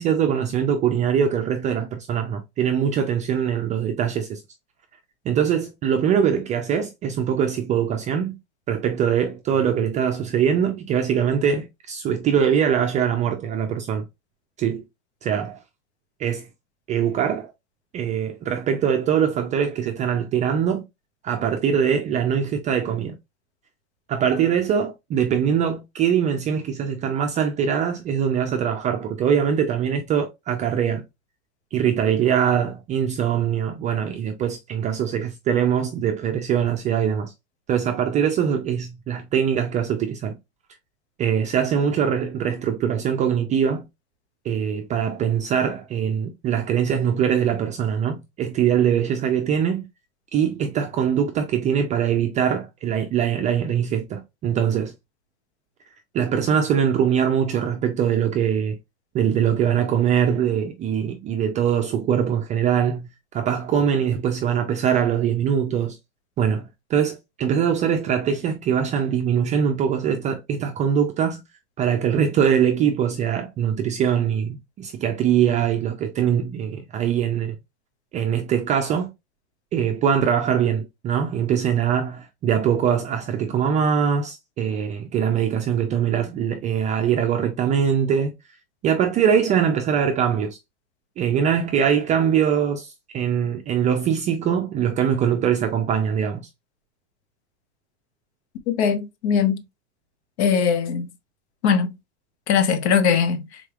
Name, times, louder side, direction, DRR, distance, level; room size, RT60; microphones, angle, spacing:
voice 1, 0.0-4.4 5.3-8.4 8.7-14.0 14.6-14.8 15.2-15.6 16.2-16.5 16.9-17.5 17.9-20.9 21.2-23.2 24.1-31.0 31.7-37.3 37.7-40.4 41.2-43.8 44.4-49.9 50.3-54.9 56.1-58.8 59.1-66.0 66.4-71.4 71.8-77.6 78.1-79.1 79.7-88.3 88.8-90.6 91.2-96.5, right 8 dB, 25° right, 0.3 m, -22 dB
voice 2, 98.7-99.6 100.4-101.1 101.6-101.9 102.5-103.6, left 7 dB, 80° left, 0.9 m, -20 dB
3.8 x 3.2 x 2.3 m
supercardioid pair, 135°, 33 cm